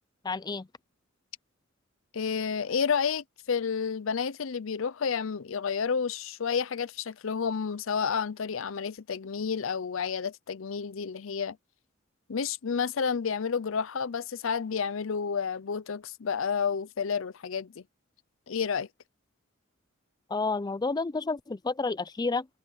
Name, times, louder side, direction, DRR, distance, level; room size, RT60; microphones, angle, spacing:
voice 1, 0.2-0.7 20.3-22.5, left 3 dB, 20° left, 0.4 m, -30 dB
voice 2, 2.1-11.6 12.3-17.8 18.5-18.9, left 6 dB, 75° left, 0.6 m, -30 dB
head